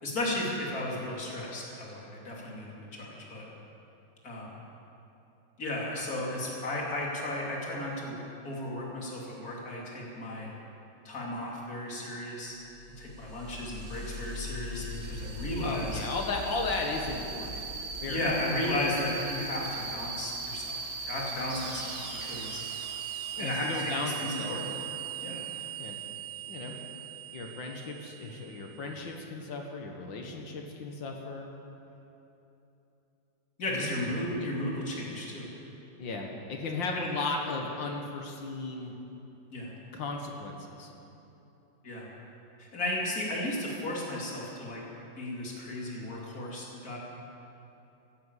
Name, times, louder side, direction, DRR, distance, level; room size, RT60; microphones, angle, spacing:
voice 1, 0.0-3.5 4.2-4.5 5.6-8.2 8.4-10.5 11.0-12.6 13.0-16.0 18.1-22.0 22.2-22.6 23.4-24.7 25.2-25.4 33.6-35.5 36.9-37.1 39.5-39.7 41.8-42.1 42.6-44.8 45.2-47.0, left 1 dB, 50° left, -4 dB, 3.3 m, -34 dB
sound 1, 12.7-29.0, right 4 dB, 35° right, 1.4 m, -39 dB
voice 2, 15.6-17.7 18.0-18.3 23.3-24.6 25.8-26.0 26.5-26.7 27.3-31.5 33.7-34.2 36.0-38.9 39.9-40.9, left 3 dB, 75° left, 1 dB, 2.1 m, -35 dB
14.5 x 11.0 x 8.3 m, 2.9 s
omnidirectional pair, 2.1 m